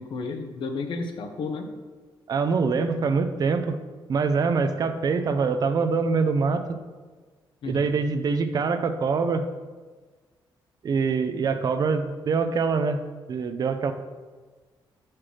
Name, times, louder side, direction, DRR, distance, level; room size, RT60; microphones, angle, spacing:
voice 1, 0.0-1.7 7.6-8.0, left 4 dB, 70° left, 6 dB, 0.8 m, -32 dB
voice 2, 2.3-3.8 4.1-6.8 7.7-9.5 10.8-13.0 13.3-13.9, right 4 dB, 50° right, 9 dB, 0.5 m, -24 dB
7.6 x 5.8 x 3.3 m, 1.4 s
cardioid pair, 130°, 9 cm